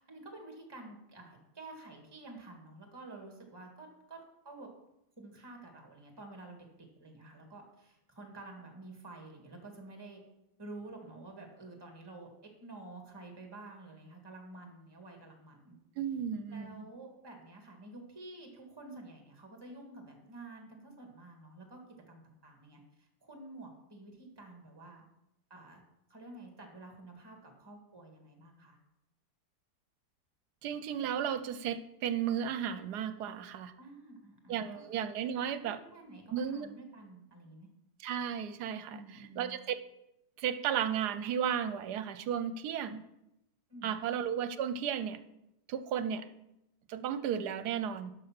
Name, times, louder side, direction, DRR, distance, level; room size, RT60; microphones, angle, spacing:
voice 1, 0.0-4.2 4.4-4.7 5.2-6.7 7.0-10.2 10.6-15.8 16.5-21.8 22.1-25.1 25.5-25.8 26.1-28.8 33.8-35.0 35.6-37.7 38.9-39.6 43.7-44.1, right 2 dB, 15° right, 3 dB, 1.8 m, -50 dB
voice 2, 16.0-16.8 30.6-33.7 34.5-35.8 36.3-36.7 38.0-39.8 40.4-43.0 43.8-45.2 45.7-46.3 46.9-48.1, right 8 dB, 75° right, 12 dB, 1.2 m, -34 dB
12.0 x 5.5 x 5.8 m, 0.85 s
omnidirectional pair, 1.8 m